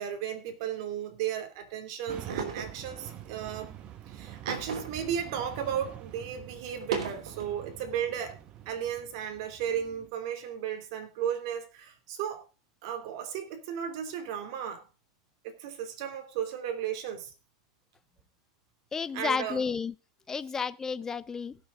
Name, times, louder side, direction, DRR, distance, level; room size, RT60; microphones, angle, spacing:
voice 1, 0.0-3.7 4.1-8.3 8.7-12.4 12.8-14.9 15.4-17.3 19.1-19.7, right 9 dB, 60° right, 2.8 m, -35 dB
sound 1, 2.1-10.1, right 11 dB, 40° right, 1.4 m, -46 dB
sound 2, 2.3-2.8 4.5-5.1 5.5-5.6 6.7-7.5, right 6 dB, 90° right, 3.2 m, -35 dB
voice 2, 18.9-19.9 20.3-21.6, left 5 dB, 15° left, 0.6 m, -31 dB
17.5 x 6.9 x 3.7 m
supercardioid pair, 120°, 3 cm